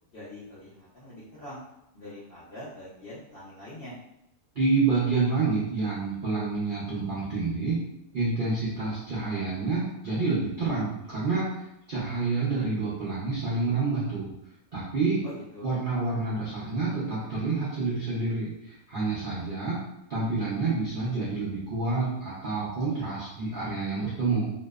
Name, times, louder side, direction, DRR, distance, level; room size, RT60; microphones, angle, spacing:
voice 1, 0.1-1.6 1.9-4.0 15.2-15.8, left 1 dB, 60° left, -9 dB, 0.6 m, -43 dB
voice 2, 4.5-7.8 8.1-14.3 14.7-15.2 15.6-19.8 20.1-24.5, right 3 dB, 60° right, -9 dB, 0.5 m, -28 dB
2.7 x 2.0 x 2.2 m, 0.81 s
omnidirectional pair, 1.6 m